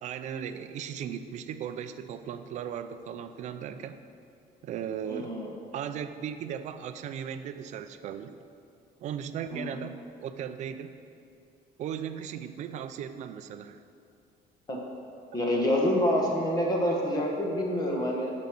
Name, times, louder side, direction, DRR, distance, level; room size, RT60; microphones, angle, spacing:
voice 1, 0.0-4.0 4.6-5.4 5.7-8.4 9.0-10.9 11.8-13.8 15.3-15.4, right 8 dB, 45° right, 10 dB, 0.5 m, -37 dB
voice 2, 5.1-5.5 9.5-9.7 14.7-14.8 15.3-18.3, left 1 dB, 25° left, -1 dB, 1.5 m, -27 dB
12.5 x 5.3 x 6.0 m, 2.5 s
cardioid pair, 170°, 16 cm